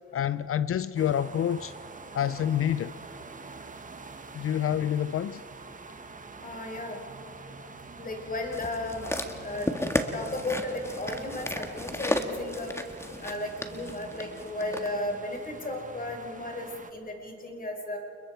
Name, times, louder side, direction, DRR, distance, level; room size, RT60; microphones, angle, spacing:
voice 1, 0.1-1.7 2.1-3.0 4.3-5.4, left 10 dB, 50° left, 0.5 m, -27 dB
sound 1, 1.0-16.9, right 4 dB, 25° right, 1.6 m, -46 dB
voice 2, 6.4-7.0 8.0-9.1 9.4-9.7 10.1-12.7 13.2-18.0, left 2 dB, 30° left, 5.0 m, -34 dB
sound 2, 8.5-14.9 15.6-15.7, left 1 dB, 10° left, 1.7 m, -33 dB
29.5 x 22.0 x 4.6 m
cardioid pair, 90°, 30 cm